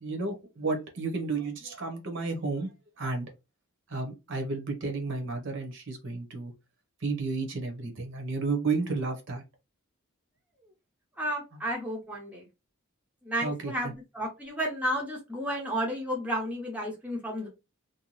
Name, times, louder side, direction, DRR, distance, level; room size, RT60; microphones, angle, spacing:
voice 1, 0.0-2.7 3.0-3.3 3.9-6.5 7.0-9.4 11.5-11.6 13.4-13.9, right 3 dB, 55° right, 4 dB, 0.8 m, -32 dB
voice 2, 11.2-12.5 13.2-17.5, equal, 5° right, -1 dB, 0.5 m, -32 dB
2.7 x 2.2 x 3.0 m, 0.26 s
head